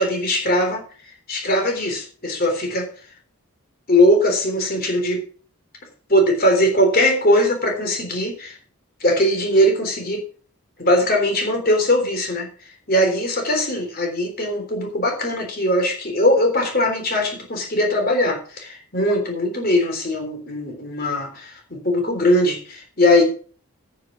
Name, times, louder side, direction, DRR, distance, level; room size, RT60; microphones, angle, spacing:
voice 1, 0.0-2.9 3.9-5.2 6.1-8.6 9.0-10.2 10.8-12.5 12.9-23.2, left 1 dB, 40° left, 3 dB, 3.6 m, -20 dB
9.6 x 8.2 x 6.2 m, 0.42 s
head